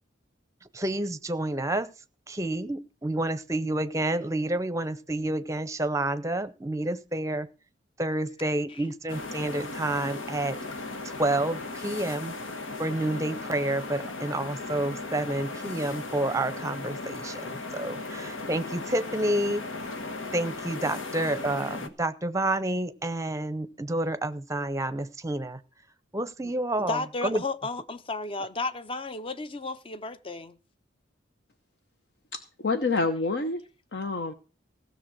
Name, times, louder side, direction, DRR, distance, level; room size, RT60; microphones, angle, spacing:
voice 1, 0.7-1.9 2.3-7.5 8.0-10.6 11.0-12.3 12.8-19.6 20.3-25.6 26.1-27.4, right 1 dB, 15° right, 0.7 m, -29 dB
sound 1, 9.1-21.9, left 3 dB, 90° left, 1.4 m, -37 dB
voice 2, 26.8-30.6, left 3 dB, 30° left, 0.7 m, -33 dB
voice 3, 32.3-33.6 33.9-34.3, left 3 dB, 60° left, 0.8 m, -27 dB
16.0 x 6.7 x 6.1 m
head